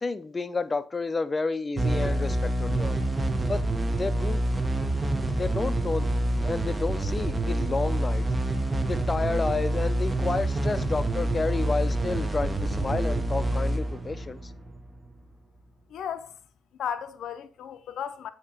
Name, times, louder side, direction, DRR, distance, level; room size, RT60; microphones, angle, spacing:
voice 1, 0.0-3.0 3.5-3.6 4.0-4.4 5.4-6.0 6.4-8.3 8.9-14.5, left 3 dB, 25° left, 0.5 m, -30 dB
sound 1, 1.8-15.1, right 1 dB, 25° right, 0.8 m, -27 dB
voice 2, 15.9-16.4 16.8-18.3, left 8 dB, 70° left, 0.5 m, -34 dB
8.2 x 2.9 x 4.9 m
cardioid pair, 90°, 0 cm